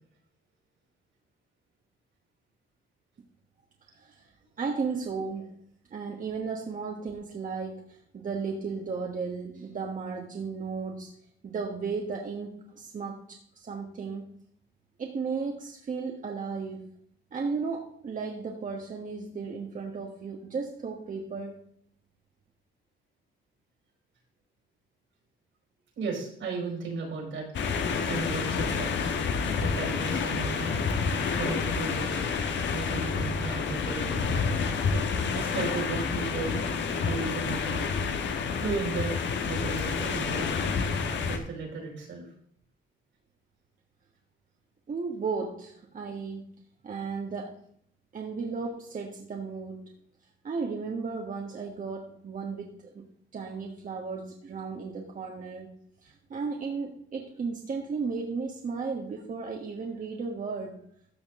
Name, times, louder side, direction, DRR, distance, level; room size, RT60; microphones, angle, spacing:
voice 1, 3.9-4.3 4.6-5.6 5.9-11.1 11.4-14.3 15.0-16.9 17.3-21.6 44.9-46.6 46.8-47.6 48.1-49.9 50.4-53.0 53.3-55.8 56.0-60.8, right 5 dB, 40° right, 1 dB, 1.3 m, -35 dB
voice 2, 26.0-27.5 28.1-29.1 29.6-30.7 31.4-32.1 32.7-34.6 35.3-36.7 37.0-37.9 38.6-39.2 39.4-40.7 41.1-42.3, right 4 dB, 75° right, 0 dB, 4.6 m, -35 dB
sound 1, 27.5-41.4, left 5 dB, 65° left, 1.3 m, -29 dB
13.5 x 6.2 x 3.7 m, 0.66 s
cardioid pair, 90°, 20 cm